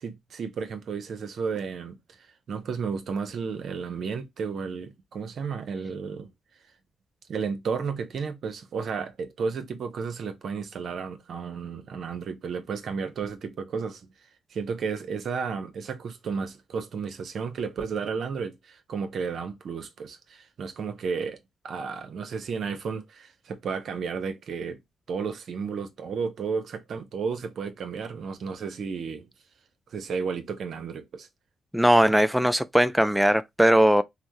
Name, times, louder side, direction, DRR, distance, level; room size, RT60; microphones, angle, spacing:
voice 1, 0.0-2.2 2.5-6.3 7.3-14.1 14.5-21.4 21.6-24.8 25.1-29.3 29.9-31.3, right 5 dB, 65° right, 0.7 m, -33 dB
voice 2, 31.7-34.0, equal, 5° right, 0.3 m, -19 dB
3.4 x 2.1 x 2.6 m
supercardioid pair, 55°, 0 cm